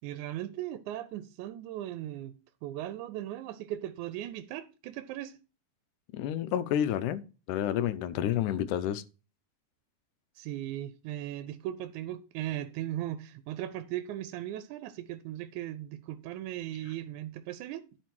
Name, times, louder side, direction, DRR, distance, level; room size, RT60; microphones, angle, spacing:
voice 1, 0.0-2.3 2.6-5.4 10.4-17.9, right 13 dB, 80° right, 1.9 m, -38 dB
voice 2, 6.1-7.2 7.5-9.0, left 10 dB, 85° left, 2.1 m, -29 dB
12.0 x 4.6 x 4.4 m
omnidirectional pair, 3.5 m